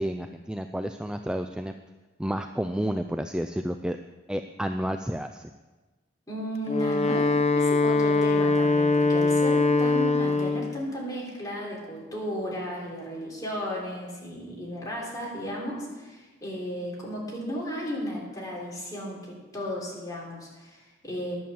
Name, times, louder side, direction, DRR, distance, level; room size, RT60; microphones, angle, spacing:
voice 1, 0.0-1.7 2.2-4.0 4.3-5.4, equal, 5° right, 7 dB, 0.3 m, -30 dB
voice 2, 6.3-21.4, equal, 20° left, -4 dB, 3.4 m, -34 dB
Wind instrument woodwind instrument, 6.6-10.8, left 3 dB, 35° left, 0.7 m, -22 dB
11.0 x 7.6 x 7.0 m, 1.2 s
head